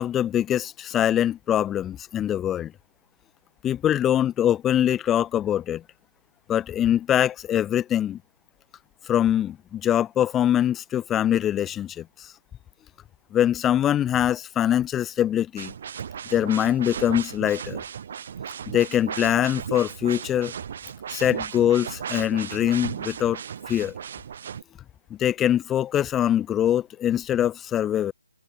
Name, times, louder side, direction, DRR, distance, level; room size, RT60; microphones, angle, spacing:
voice 1, 0.0-2.7 3.6-5.8 6.5-8.2 9.1-12.3 13.3-15.7 16.3-17.8 18.7-20.5 21.1-23.4 23.7-23.9 25.2-28.1, left 11 dB, 5° left, 1.8 m, -23 dB
sound 1, 15.6-24.6, right 8 dB, 30° right, 5.1 m, -35 dB
hypercardioid pair, 175°, 0 cm